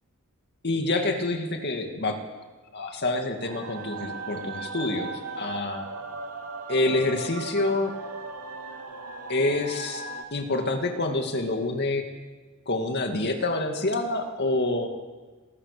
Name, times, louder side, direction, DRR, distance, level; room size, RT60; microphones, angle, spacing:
voice 1, 0.6-2.2 2.7-5.9 6.7-7.9 9.3-10.0 10.3-12.0 12.7-14.9, left 2 dB, 50° left, 4 dB, 2.3 m, -27 dB
sound 1, 3.4-10.2, right 3 dB, 85° right, 3.0 m, -37 dB
27.0 x 19.5 x 6.8 m, 1.3 s
head